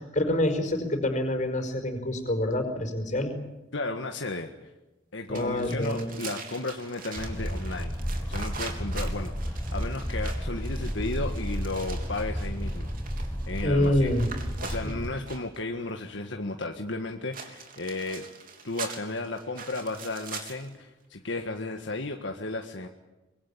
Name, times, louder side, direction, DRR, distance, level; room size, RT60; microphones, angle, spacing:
voice 1, 0.0-3.3 5.3-6.2 13.6-14.3, left 1 dB, 40° left, 6 dB, 5.1 m, -26 dB
voice 2, 3.7-4.5 5.1-8.0 8.3-12.9 13.5-14.1 14.6-18.2 18.6-22.9, left 2 dB, 75° left, 3 dB, 1.7 m, -34 dB
sound 1, 5.3-15.6 17.3-20.7, right 5 dB, 45° right, 3.5 m, -43 dB
sound 2, 7.2-15.1, equal, 10° left, 7.5 m, -32 dB
25.0 x 22.5 x 8.7 m, 1.0 s
head